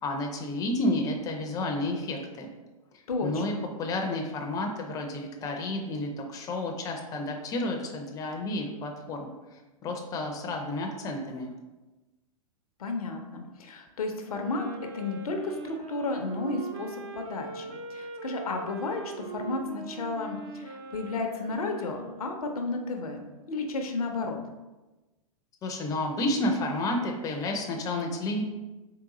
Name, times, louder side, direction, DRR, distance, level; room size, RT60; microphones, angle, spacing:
voice 1, 0.0-2.5 3.2-11.5 25.6-28.4, left 1 dB, 20° left, 2 dB, 0.5 m, -31 dB
voice 2, 3.1-3.6 12.8-14.6 14.9-24.4, left 3 dB, 75° left, 4 dB, 0.6 m, -33 dB
Wind instrument woodwind instrument, 14.2-22.6, right 4 dB, 45° right, 0.5 m, -41 dB
3.7 x 3.4 x 2.9 m, 1.1 s
hypercardioid pair, 110°, 19 cm